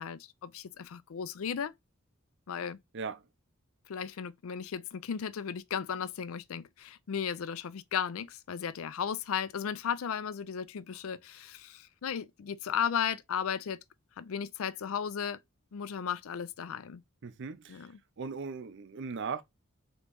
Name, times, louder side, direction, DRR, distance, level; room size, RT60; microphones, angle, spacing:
voice 1, 0.0-1.7 2.5-2.8 3.9-13.8 14.2-15.4 15.7-17.0 17.7-17.9, left 7 dB, 75° left, 0.4 m, -35 dB
voice 2, 2.9-3.3 17.2-17.9 18.2-19.4, right 5 dB, 60° right, 0.5 m, -38 dB
3.9 x 3.1 x 3.4 m
head